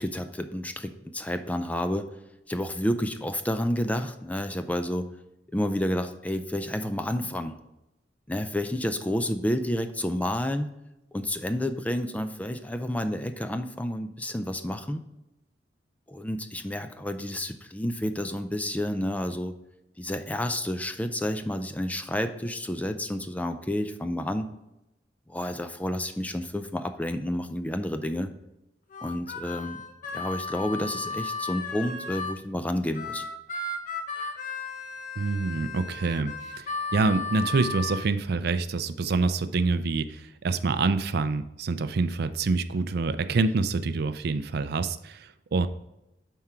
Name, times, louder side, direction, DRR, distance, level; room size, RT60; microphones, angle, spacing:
voice 1, 0.0-2.1 2.5-5.1 5.5-7.6 8.3-10.7 11.1-15.0 16.1-19.5 20.0-24.5 25.3-28.3 29.0-29.8 30.1-33.2, left 1 dB, 10° left, 8 dB, 0.4 m, -30 dB
Harmonica, 28.9-32.4 32.9-38.0, left 3 dB, 50° left, 0.8 m, -35 dB
voice 2, 35.2-45.7, right 3 dB, 60° right, 12 dB, 0.4 m, -26 dB
7.5 x 4.7 x 4.3 m, 0.91 s
head